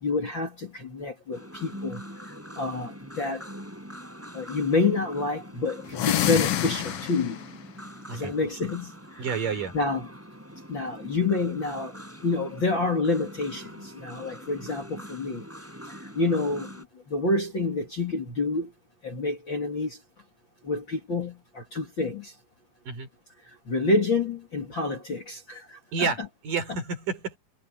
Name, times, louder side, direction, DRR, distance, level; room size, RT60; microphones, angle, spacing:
voice 1, 0.0-3.4 4.3-7.4 8.1-9.2 9.7-10.1 10.7-11.9 12.2-15.4 16.1-16.7 17.1-18.7 19.0-20.0 20.6-22.3 23.7-26.3, left 3 dB, 35° left, 2.8 m, -28 dB
sound 1, 1.3-16.8, equal, 5° right, 6.8 m, -43 dB
sound 2, 5.9-7.5, left 12 dB, 80° left, 1.3 m, -27 dB
voice 2, 9.2-9.7 22.8-23.1 25.9-27.4, right 5 dB, 65° right, 6.7 m, -30 dB
omnidirectional pair, 4.1 m